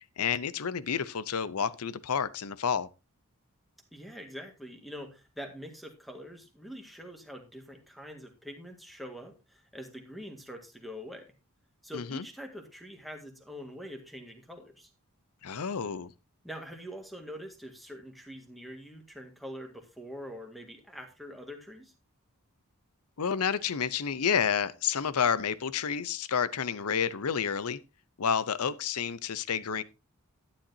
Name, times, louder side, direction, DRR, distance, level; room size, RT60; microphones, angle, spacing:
voice 1, 0.0-2.9 11.9-12.2 15.4-16.1 23.2-27.8 28.2-29.8, left 7 dB, 90° left, 0.7 m, -30 dB
voice 2, 3.9-11.3 11.8-14.9 16.4-21.9, equal, ahead, 1.7 m, -44 dB
11.5 x 10.0 x 2.7 m
head